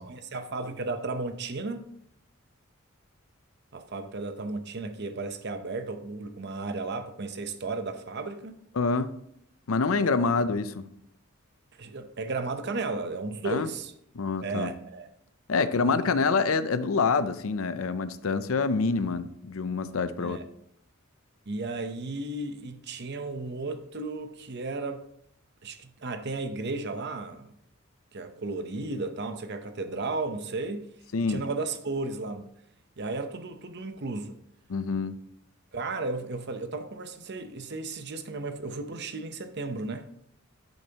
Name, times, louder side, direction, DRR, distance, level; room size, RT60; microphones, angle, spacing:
voice 1, 0.0-1.9 3.7-8.5 11.8-13.9 14.4-15.1 15.6-16.0 20.2-20.4 21.5-25.0 25.6-27.5 28.1-30.9 31.3-32.5 33.0-34.4 35.7-40.1, right 3 dB, 55° right, 0.8 m, -34 dB
voice 2, 8.8-9.1 9.7-10.9 13.4-13.7 14.1-14.7 15.5-20.4 31.1-31.4 34.7-35.2, left 4 dB, 75° left, 0.6 m, -26 dB
10.5 x 8.7 x 2.9 m
head